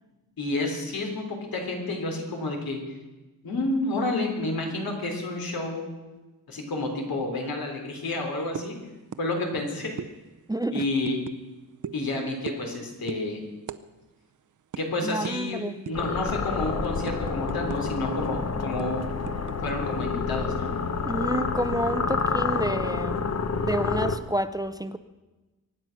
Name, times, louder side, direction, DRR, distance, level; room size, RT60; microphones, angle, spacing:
voice 1, 0.4-2.8 3.4-5.9 6.5-8.8 9.2-10.0 10.7-11.2 11.9-13.4 14.8-19.1 19.6-20.7, left 2 dB, 85° left, 2 dB, 3.6 m, -30 dB
sound 1, 8.6-8.8 9.1-9.3 9.5-9.7 10.0-10.1 10.8-11.4 11.8-12.0 12.5-12.7 13.1-13.2 13.7-13.8 14.1-14.3 14.7-14.8 15.2-15.4 15.9-16.1 16.5-18.0 18.3-18.4 18.8-19.7, right 8 dB, 60° right, 0.7 m, -37 dB
voice 2, 15.0-15.8 21.1-23.3 23.6-25.0, right 1 dB, 10° right, 11 dB, 0.5 m, -29 dB
sound 2, 15.9-24.2, left 5 dB, 45° left, 1.0 m, -28 dB
23.5 x 9.5 x 6.0 m, 1.1 s
wide cardioid pair, 140°, 35 cm